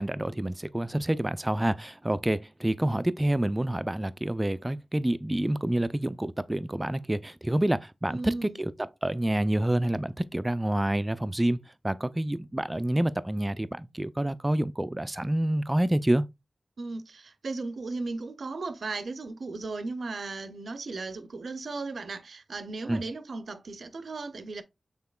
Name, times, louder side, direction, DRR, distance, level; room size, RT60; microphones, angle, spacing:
voice 1, 0.0-8.7 9.0-11.6 11.8-16.2 22.9-23.0, right 1 dB, 15° right, 0.3 m, -28 dB
voice 2, 8.1-8.6 13.0-13.1 16.8-24.6, right 3 dB, 75° right, 0.5 m, -36 dB
5.7 x 3.7 x 2.3 m
wide cardioid pair, 85°, 0 cm